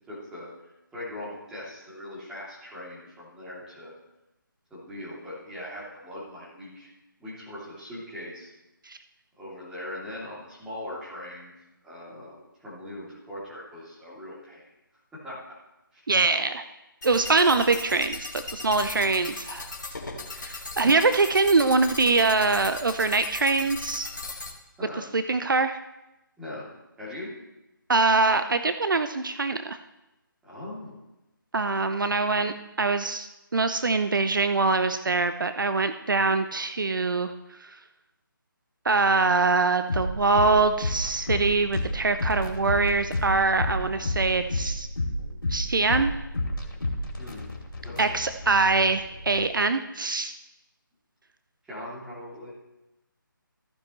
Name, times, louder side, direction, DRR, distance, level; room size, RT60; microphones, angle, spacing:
voice 1, 0.1-0.5 0.9-3.9 4.7-6.9 7.2-8.5 9.4-11.5 11.8-14.7 15.2-15.4 15.9-16.1 20.8-21.0 24.8-25.1 26.4-26.6 27.0-27.3 30.4-31.0 47.2-47.5 47.8-48.2 51.6-52.5, left 1 dB, 5° right, -8 dB, 2.7 m, -40 dB
voice 2, 16.1-16.6 17.0-19.7 20.3-24.1 25.1-25.8 27.9-29.8 31.5-37.3 38.8-44.9 45.5-46.1 48.0-50.3, right 3 dB, 65° right, 10 dB, 0.6 m, -23 dB
sound 1, 17.0-24.5, left 3 dB, 55° left, 2.0 m, -38 dB
sound 2, 39.9-49.5, left 1 dB, 75° left, 3.0 m, -31 dB
14.0 x 10.0 x 3.1 m, 0.98 s
figure-of-eight pair, 150°, 12 cm